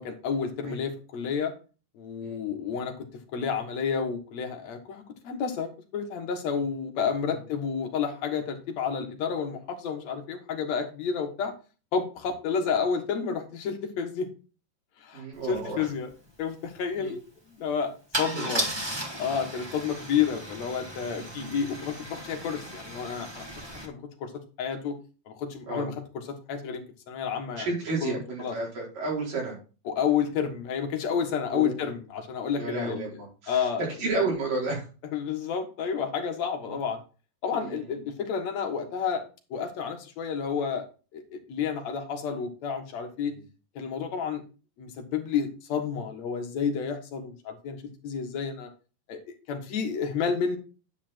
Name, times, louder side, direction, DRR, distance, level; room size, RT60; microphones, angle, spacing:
voice 1, 0.0-1.5 2.0-3.1 3.3-11.5 11.9-14.3 15.0-16.1 16.4-17.2 17.5-17.9 18.2-18.7 19.2-24.3 24.6-25.0 25.3-25.9 26.3-27.7 28.0-28.5 29.9-33.1 33.5-33.8 34.1-34.3 35.1-37.0 37.4-39.2 39.5-40.9 41.1-43.3 43.8-44.4 44.8-48.7 49.1-50.6, left 6 dB, 60° left, 4 dB, 2.5 m, -30 dB
voice 2, 15.1-15.9 17.0-17.1 18.3-18.5 21.0-21.6 25.7-25.9 27.6-29.6 31.5-31.7 32.6-34.8 37.5-37.9 43.3-43.4, right 3 dB, 75° right, -4 dB, 6.1 m, -32 dB
Car / Engine starting / Idling, 15.5-15.6 15.9-16.1 18.1-23.8, right 1 dB, 40° right, 0.3 m, -35 dB
10.0 x 5.7 x 4.4 m, 0.34 s
omnidirectional pair, 3.9 m